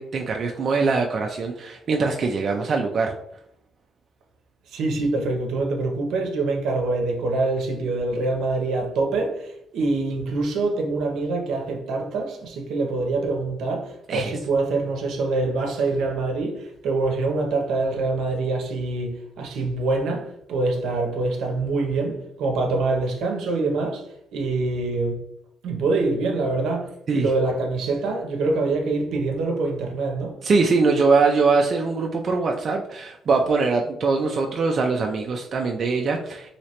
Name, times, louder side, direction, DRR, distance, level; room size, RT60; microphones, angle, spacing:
voice 1, 0.0-3.1 14.1-14.4 27.1-27.3 30.4-36.6, right 4 dB, 50° right, 0.3 m, -22 dB
voice 2, 4.7-24.0 24.3-25.2 25.6-30.3, right 3 dB, 80° right, 0.7 m, -25 dB
3.1 x 2.8 x 2.8 m
cardioid pair, 90°, 0 cm